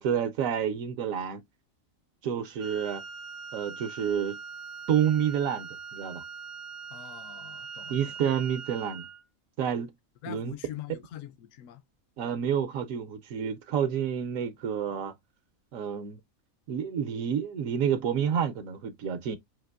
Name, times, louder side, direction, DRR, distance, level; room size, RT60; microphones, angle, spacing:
voice 1, 0.0-1.4 2.2-3.0 3.5-4.4 4.9-6.2 7.9-9.1 9.6-9.9 10.3-10.5 12.2-15.1 15.7-16.2 16.7-19.4, right 8 dB, 75° right, 1.0 m, -29 dB
Wind instrument woodwind instrument, 2.6-9.2, right 5 dB, 60° right, 0.7 m, -42 dB
voice 2, 6.9-8.2 10.2-11.8, left 12 dB, 70° left, 1.0 m, -43 dB
5.8 x 2.8 x 2.2 m
omnidirectional pair, 1.5 m